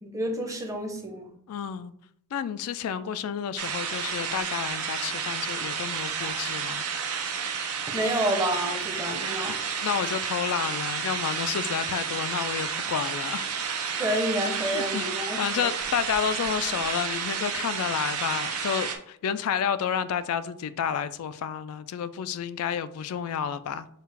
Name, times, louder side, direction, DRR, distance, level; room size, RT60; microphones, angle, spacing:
voice 1, 0.0-1.3 7.9-9.6 14.0-15.7, equal, 15° right, 0.7 m, -29 dB
voice 2, 1.5-1.9 2.3-6.9 9.8-13.5 14.7-23.9, left 8 dB, 75° left, 0.3 m, -30 dB
sound 1, 3.6-19.0, right 6 dB, 75° right, 0.7 m, -31 dB
6.5 x 2.4 x 3.3 m
head